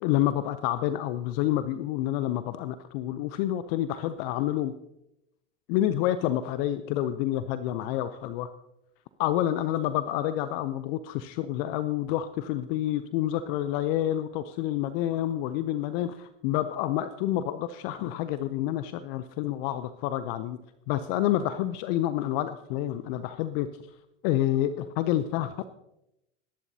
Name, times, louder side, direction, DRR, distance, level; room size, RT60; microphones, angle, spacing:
voice 1, 0.0-4.7 5.7-8.5 9.2-20.6 20.9-23.7 24.2-25.6, left 12 dB, 55° left, 12 dB, 0.7 m, -28 dB
21.0 x 11.0 x 2.8 m, 0.86 s
hypercardioid pair, 90°, 35 cm